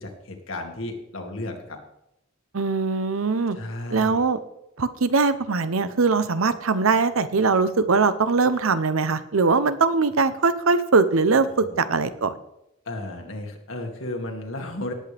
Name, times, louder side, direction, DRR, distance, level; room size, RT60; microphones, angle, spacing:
voice 1, 0.0-1.8 3.5-4.2 11.6-11.9 12.9-14.9, left 1 dB, 70° left, 3 dB, 2.1 m, -34 dB
voice 2, 2.5-3.6 3.9-4.4 4.8-12.4, right 4 dB, 90° right, 12 dB, 0.8 m, -21 dB
18.5 x 8.4 x 3.5 m, 0.84 s
head